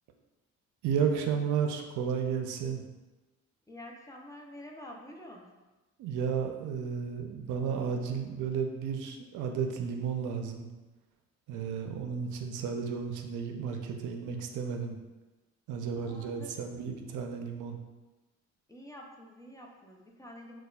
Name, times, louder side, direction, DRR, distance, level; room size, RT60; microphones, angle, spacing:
voice 1, 0.8-2.8 6.0-10.7 11.5-14.9 15.7-17.8, right 6 dB, 80° right, 4 dB, 0.5 m, -33 dB
voice 2, 3.7-5.6 16.0-16.7 18.7-20.6, left 1 dB, 10° left, 0 dB, 0.4 m, -48 dB
4.0 x 2.3 x 2.2 m, 1.1 s
cardioid pair, 90°, 30 cm